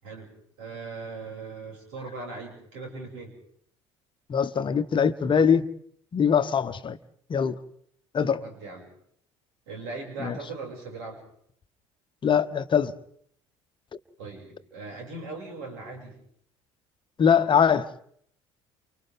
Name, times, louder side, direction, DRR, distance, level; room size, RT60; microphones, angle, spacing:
voice 1, 0.6-3.4 8.4-8.9 9.7-11.2 14.2-16.2, right 3 dB, 65° right, 6.9 m, -39 dB
voice 2, 4.3-5.6 6.1-7.0 7.3-7.6 8.1-8.4 10.2-10.4 12.2-12.9 17.2-17.9, left 7 dB, 30° left, 1.2 m, -22 dB
29.5 x 29.5 x 3.7 m
figure-of-eight pair, 60°, 15 cm